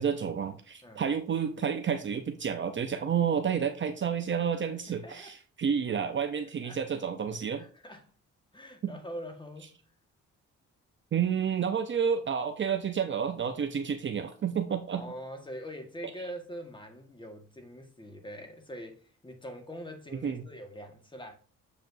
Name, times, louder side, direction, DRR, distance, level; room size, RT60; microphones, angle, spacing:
voice 1, 0.0-7.6 8.8-9.0 11.1-15.1 20.2-20.4, right 7 dB, 40° right, 0.7 m, -30 dB
voice 2, 4.9-5.3 6.6-6.8 7.5-8.1 8.5-9.8 14.9-21.4, equal, 15° left, 1.5 m, -43 dB
7.4 x 5.1 x 2.7 m
cardioid pair, 90°, 30 cm